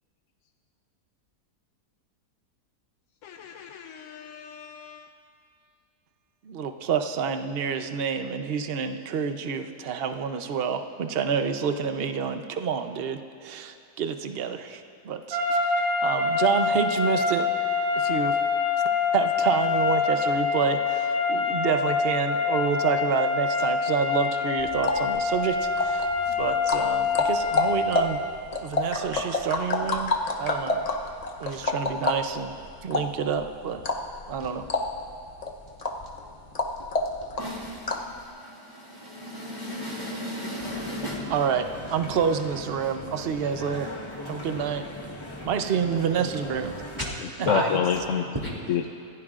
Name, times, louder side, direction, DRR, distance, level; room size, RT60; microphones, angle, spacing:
voice 1, 3.2-5.1 47.2-48.3 48.7-48.9, left 8 dB, 65° left, 5 dB, 0.8 m, -29 dB
voice 2, 6.4-17.5 17.9-18.4 19.1-28.2 28.6-30.9 31.4-32.6 32.8-33.8 34.3-34.7 41.3-43.9 44.2-44.9 45.4-46.7 47.4-47.6, right 7 dB, 50° right, 7 dB, 0.7 m, -28 dB
sound 1, 15.3-28.2, left 5 dB, 75° right, 2.5 m, -25 dB
sound 2, 24.6-38.2, left 2 dB, 35° left, 0.7 m, -30 dB
voice 3, 37.2-41.3 47.5-48.1 48.4-48.5, equal, 15° right, -4 dB, 2.5 m, -34 dB
sound 3, 40.6-47.1, left 1 dB, 20° left, 1.2 m, -39 dB
26.5 x 15.5 x 2.5 m, 2.6 s
omnidirectional pair, 1.7 m